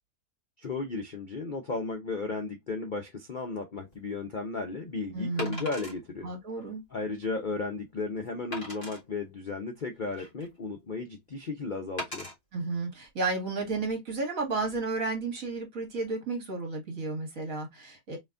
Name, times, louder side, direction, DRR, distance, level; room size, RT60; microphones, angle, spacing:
voice 1, 0.6-6.3 6.9-12.3, left 3 dB, 50° left, 0.6 m, -34 dB
Wood, 3.8-3.9 5.4-6.0 6.6-6.7 7.2-7.3 8.5-9.0 9.8-10.6 12.0-12.3 13.1-13.3, equal, 25° left, 2.2 m, -39 dB
voice 2, 5.1-5.7 6.2-6.8 12.5-18.2, right 3 dB, 55° right, 2.1 m, -32 dB
4.2 x 3.3 x 2.5 m
omnidirectional pair, 1.7 m